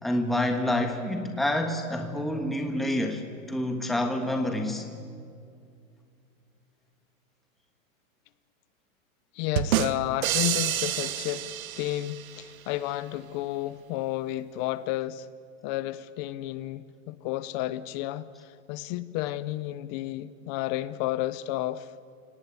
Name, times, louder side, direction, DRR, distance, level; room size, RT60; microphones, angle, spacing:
voice 1, 0.0-3.2 3.5-4.9, left 1 dB, ahead, 1.4 m, -27 dB
voice 2, 9.3-11.5 11.8-15.3 15.6-21.9, left 15 dB, 30° left, 0.6 m, -32 dB
sound 1, 9.6-12.4, right 11 dB, 75° right, 1.2 m, -28 dB
28.5 x 18.5 x 8.3 m
hypercardioid pair, 145°, 42 cm